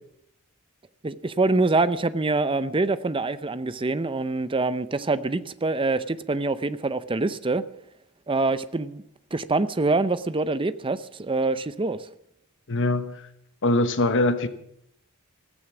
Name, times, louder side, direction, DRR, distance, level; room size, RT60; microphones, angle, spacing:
voice 1, 1.0-7.6 8.3-9.0 9.3-12.0, right 3 dB, 25° right, 0.6 m, -25 dB
voice 2, 12.7-13.3 13.6-14.5, left 2 dB, 55° left, 1.1 m, -22 dB
15.5 x 14.5 x 6.1 m
head